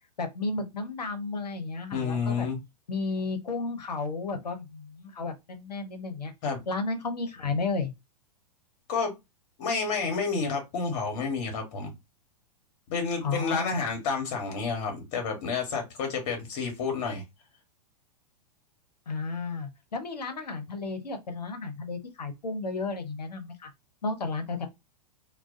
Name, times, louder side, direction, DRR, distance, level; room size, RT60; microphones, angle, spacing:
voice 1, 0.2-2.5 2.9-6.3 6.7-7.9 13.2-13.8 19.1-23.7 24.0-24.7, left 3 dB, 80° left, 0.8 m, -33 dB
voice 2, 1.9-2.6 6.4-6.6 8.9-9.2 9.6-11.9 12.9-17.2, left 5 dB, 45° left, 1.1 m, -30 dB
2.3 x 2.2 x 2.5 m
figure-of-eight pair, 105°, 21 cm